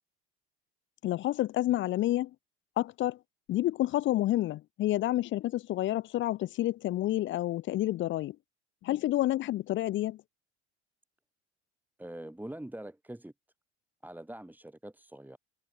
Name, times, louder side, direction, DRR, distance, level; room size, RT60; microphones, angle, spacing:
voice 1, 1.0-2.3 2.8-3.2 3.5-8.4 8.8-10.2, left 14 dB, 35° left, 0.5 m, -29 dB
voice 2, 12.0-13.3 14.0-15.4, right 1 dB, 5° right, 3.1 m, -44 dB
figure-of-eight pair, 70°, 35 cm